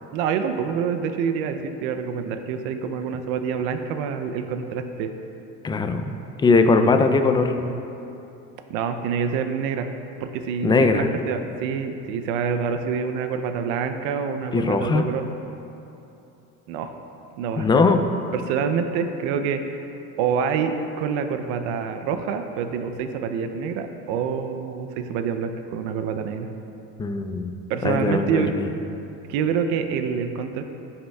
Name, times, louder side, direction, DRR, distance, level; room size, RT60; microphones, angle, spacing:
voice 1, 0.1-5.1 8.7-9.9 10.2-15.2 16.7-16.9 17.4-17.7 18.3-19.8 20.2-26.5 27.7-28.5 29.3-30.6, right 6 dB, 85° right, 7 dB, 0.6 m, -26 dB
voice 2, 5.6-6.1 6.4-7.5 10.6-11.1 14.5-15.1 17.6-18.0 27.0-27.5 27.8-28.7, left 4 dB, 15° left, 7 dB, 0.3 m, -20 dB
13.0 x 5.6 x 2.3 m, 2.9 s
cardioid pair, 115°, 34 cm